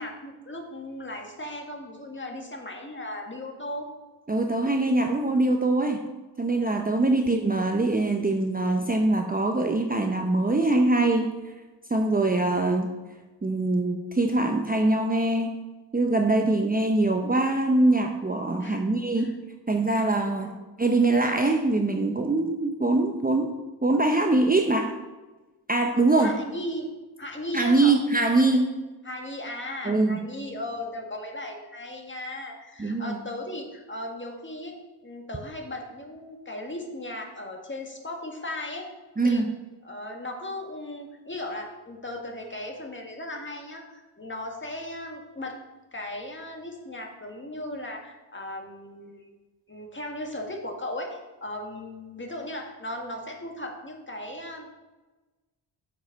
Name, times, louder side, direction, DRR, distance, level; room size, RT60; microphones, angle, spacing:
voice 1, 0.0-3.9 6.9-7.1 12.2-12.3 18.6-18.8 19.2-19.3 20.4-20.6 26.2-26.9 27.2-27.9 28.3-28.6 29.0-34.8 35.0-38.9 39.2-39.4 39.8-45.6 45.9-49.3 49.7-54.7, left 1 dB, 25° left, 1 dB, 1.8 m, -37 dB
voice 2, 4.3-6.0 6.4-11.4 11.9-12.9 13.4-15.6 15.9-19.4 19.7-20.5 20.8-23.5 23.8-24.9 25.7-26.4 27.5-28.7 29.9-30.3 32.8-33.2 39.2-39.5, right 2 dB, 20° right, 3 dB, 0.7 m, -23 dB
6.6 x 5.7 x 5.2 m, 1.2 s
cardioid pair, 50°, 44 cm